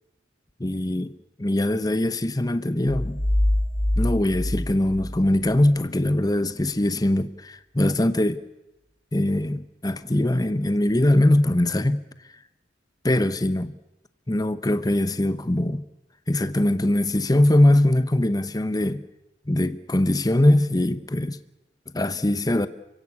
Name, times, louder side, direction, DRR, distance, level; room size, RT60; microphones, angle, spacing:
voice 1, 0.6-1.1 1.4-3.2 4.0-8.4 9.1-12.4 13.0-13.7 14.3-15.8 16.3-19.0 19.5-21.4 21.9-22.7, left 1 dB, 20° left, 0.8 m, -22 dB
sound 1, 2.9-5.7, left 1 dB, 50° left, 1.9 m, -25 dB
29.5 x 16.5 x 8.4 m
head